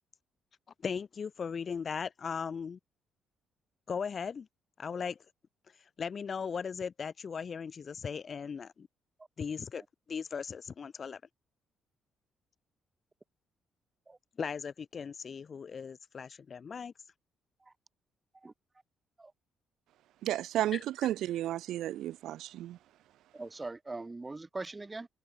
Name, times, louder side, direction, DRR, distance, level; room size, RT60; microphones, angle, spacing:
voice 1, 0.8-2.8 3.9-4.5 4.8-5.2 6.0-8.9 9.4-9.8 10.1-11.2 14.4-16.9 20.7-20.8, left 6 dB, 45° left, 0.3 m, -38 dB
voice 2, 20.2-22.8, right 13 dB, 80° right, 0.3 m, -33 dB
voice 3, 23.3-25.1, right 3 dB, 20° right, 0.5 m, -41 dB
cardioid pair, 90°, 0 cm